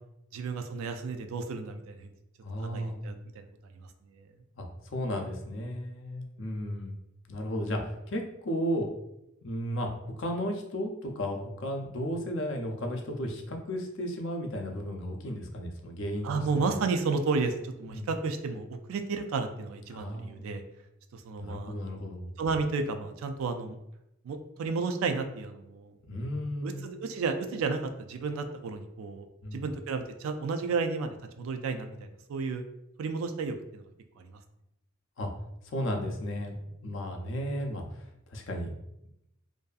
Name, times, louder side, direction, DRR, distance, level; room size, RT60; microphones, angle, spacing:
voice 1, 0.3-2.1 2.6-3.5 3.7-4.3 16.2-20.6 21.1-21.9 22.4-23.8 24.2-25.9 26.6-29.3 29.5-32.6 33.0-33.8 34.2-34.4, right 4 dB, 85° right, 8 dB, 0.3 m, -32 dB
voice 2, 2.4-3.0 4.6-6.9 7.3-8.9 9.4-9.9 10.2-16.3 16.5-16.7 17.9-18.1 19.9-20.5 21.4-22.3 26.0-26.9 29.4-29.7 35.2-35.3 35.6-36.5 36.8-37.8 38.3-38.7, equal, 60° left, 3 dB, 0.4 m, -34 dB
2.5 x 2.3 x 2.3 m, 0.84 s
head